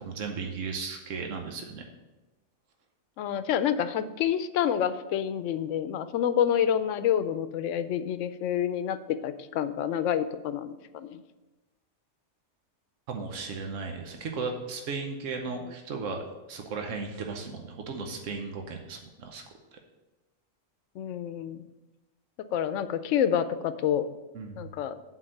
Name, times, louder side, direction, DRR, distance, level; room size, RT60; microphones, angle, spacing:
voice 1, 0.0-1.8 13.1-16.2 16.5-19.4 19.7-19.8 24.3-24.6, right 4 dB, 85° right, 3 dB, 1.2 m, -35 dB
voice 2, 3.2-11.2 21.0-21.6 22.5-24.1 24.6-25.0, left 9 dB, 80° left, 12 dB, 0.9 m, -28 dB
7.4 x 4.6 x 6.4 m, 1.1 s
omnidirectional pair, 1.3 m